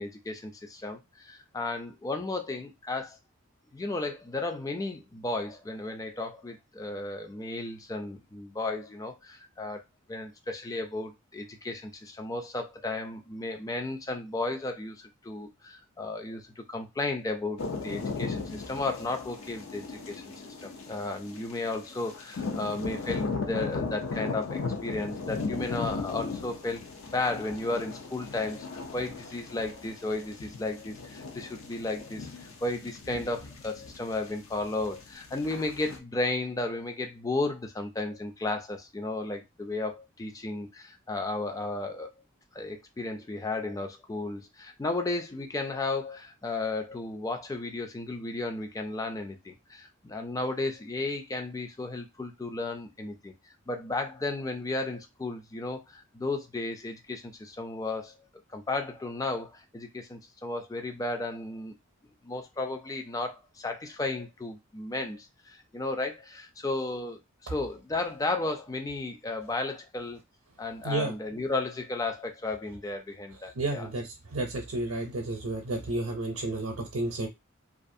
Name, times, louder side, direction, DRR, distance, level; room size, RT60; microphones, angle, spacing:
voice 1, 0.0-3.2 3.7-9.8 10.1-42.1 42.5-53.3 53.7-58.1 58.5-61.7 62.2-70.2 70.6-73.9, left 2 dB, 15° left, 0.3 m, -34 dB
sound 1, 17.6-36.0, left 4 dB, 75° left, 0.5 m, -37 dB
voice 2, 73.6-74.1 74.3-77.3, right 2 dB, 75° right, 0.6 m, -31 dB
2.4 x 2.4 x 2.6 m
head